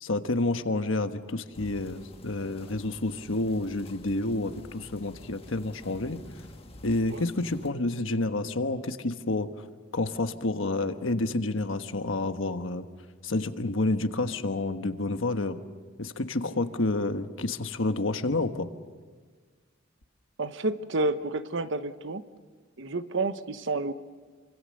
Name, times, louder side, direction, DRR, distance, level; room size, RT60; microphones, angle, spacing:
voice 1, 0.0-6.2 6.8-9.5 9.9-12.9 13.2-15.6 16.0-18.7, left 2 dB, 70° left, 8 dB, 1.3 m, -29 dB
sound 1, 1.5-7.7, left 1 dB, 30° left, 1.6 m, -48 dB
voice 2, 20.4-22.2 22.8-23.9, right 2 dB, 65° right, 11 dB, 1.0 m, -30 dB
27.0 x 25.0 x 6.6 m, 1.5 s
head